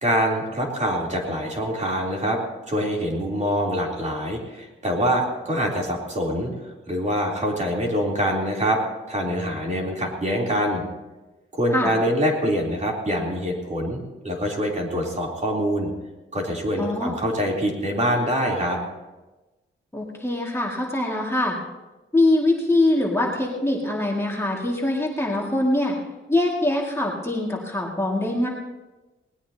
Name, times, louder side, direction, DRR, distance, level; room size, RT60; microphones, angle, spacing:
voice 1, 0.0-2.4 2.7-8.8 9.1-10.8 11.5-14.0 14.2-15.9 16.3-18.8, equal, 35° right, -2 dB, 3.5 m, -25 dB
voice 2, 16.8-17.2 19.9-21.6 22.1-25.9 26.3-28.5, left 1 dB, 10° left, -3 dB, 2.2 m, -23 dB
20.0 x 19.0 x 2.9 m, 1.1 s
wide cardioid pair, 120°, 21 cm